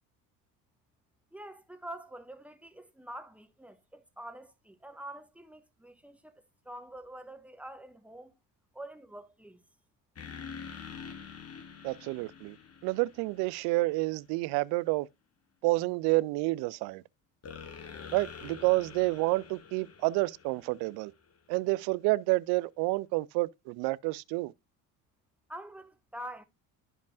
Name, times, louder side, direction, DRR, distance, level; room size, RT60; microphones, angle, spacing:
voice 1, 1.3-8.3 8.7-9.6 25.5-26.4, right 1 dB, 5° right, 1.2 m, -46 dB
sound 1, 10.2-13.8 17.4-21.4, left 6 dB, 35° left, 1.2 m, -46 dB
voice 2, 11.8-12.6 12.8-15.1 15.6-17.0 18.1-21.1 21.5-24.5, right 22 dB, 60° right, 0.5 m, -29 dB
12.0 x 5.2 x 2.3 m
hypercardioid pair, 60°, 45 cm